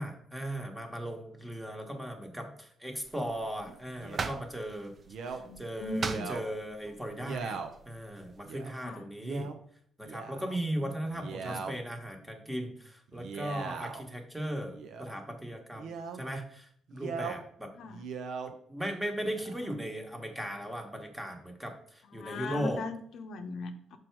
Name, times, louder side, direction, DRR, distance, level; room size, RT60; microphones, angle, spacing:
voice 1, 0.0-4.9 5.3-7.6 7.8-9.5 10.0-17.7 18.7-22.8, equal, 5° right, 3 dB, 1.3 m, -37 dB
sound 1, 3.0-8.4, right 4 dB, 45° right, 0.5 m, -42 dB
Male speech man speaking, 4.0-4.4 5.1-5.4 5.9-6.4 7.2-7.7 8.4-8.7 9.2-9.6 10.0-10.6 11.1-11.7 13.1-14.0 14.7-15.1 15.8-16.2 16.9-17.4 17.8-18.5 19.2-19.7, right 5 dB, 75° right, 0.7 m, -40 dB
voice 2, 5.3-6.3 8.8-9.0 10.8-11.0 11.3-11.7 17.7-18.0 22.0-24.0, left 2 dB, 70° left, 6 dB, 0.7 m, -39 dB
6.1 x 4.6 x 4.6 m, 0.63 s
cardioid pair, 90°, 0 cm